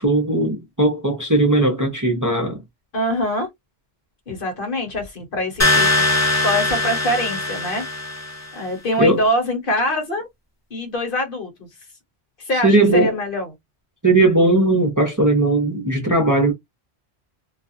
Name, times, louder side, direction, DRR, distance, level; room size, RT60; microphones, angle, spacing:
voice 1, 0.0-2.6 9.0-9.2 12.5-13.1 14.0-16.5, right 2 dB, 20° right, 0.6 m, -18 dB
voice 2, 2.9-3.5 4.3-7.8 8.5-10.3 10.7-11.7 12.4-13.5, equal, 55° left, 1.1 m, -24 dB
sound 1, 5.6-8.5, left 2 dB, 20° left, 0.7 m, -20 dB
2.4 x 2.3 x 2.5 m
omnidirectional pair, 1.1 m